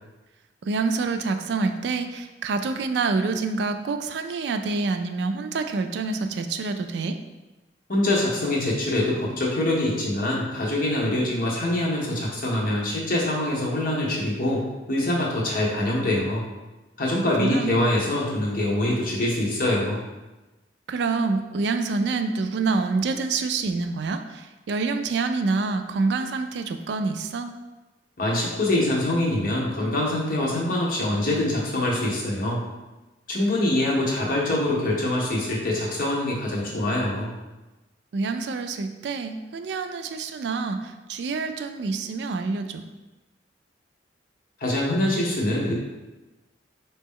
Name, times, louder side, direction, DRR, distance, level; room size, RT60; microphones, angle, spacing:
voice 1, 0.6-7.2 17.1-17.8 20.9-27.5 38.1-42.8, right 4 dB, 70° right, 8 dB, 0.3 m, -27 dB
voice 2, 7.9-14.6 14.9-16.4 17.0-20.0 28.2-32.6 33.3-37.3 44.6-45.7, left 1 dB, 50° left, -3 dB, 1.0 m, -24 dB
4.2 x 2.9 x 3.6 m, 1.1 s
head